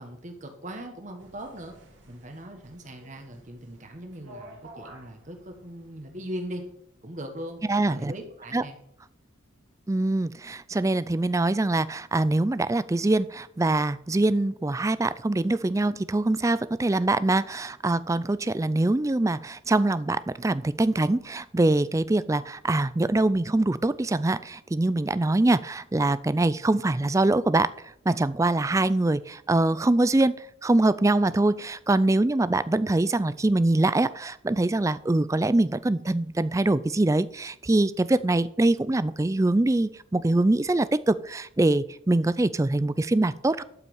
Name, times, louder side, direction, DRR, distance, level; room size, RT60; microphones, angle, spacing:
voice 1, 0.0-1.7 2.1-6.6 7.0-7.6 7.9-8.8, equal, 35° right, 4 dB, 1.5 m, -39 dB
sound 1, 1.2-6.7, right 1 dB, 65° right, 2.9 m, -51 dB
voice 2, 7.7-8.1 8.5-8.6 9.9-27.7 28.1-30.3 30.6-43.6, right 2 dB, 15° right, 16 dB, 0.4 m, -24 dB
12.0 x 5.7 x 7.1 m, 0.70 s
head